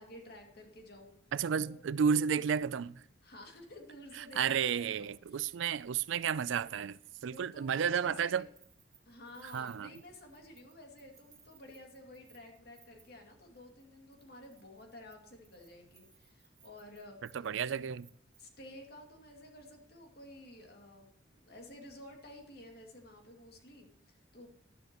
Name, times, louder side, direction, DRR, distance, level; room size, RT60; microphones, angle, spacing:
voice 1, 0.0-1.2 1.5-1.8 3.2-5.5 7.3-8.5 9.0-17.4 18.4-24.5, left 1 dB, 55° left, 2.3 m, -52 dB
voice 2, 1.3-3.0 4.2-8.4 9.5-9.9 17.3-18.1, right 7 dB, 80° right, 0.4 m, -32 dB
Keys jangling, 8.4-13.3 13.6-13.8 14.1-18.7, right 7 dB, 20° right, 1.6 m, -64 dB
12.0 x 11.5 x 3.0 m
head